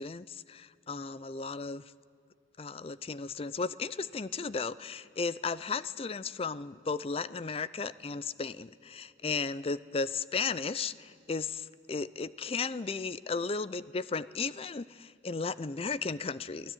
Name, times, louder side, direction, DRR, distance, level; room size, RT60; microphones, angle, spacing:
voice 1, 0.0-1.8 2.6-16.7, left 4 dB, 35° left, 17 dB, 0.5 m, -35 dB
22.5 x 16.5 x 9.1 m, 2.1 s
head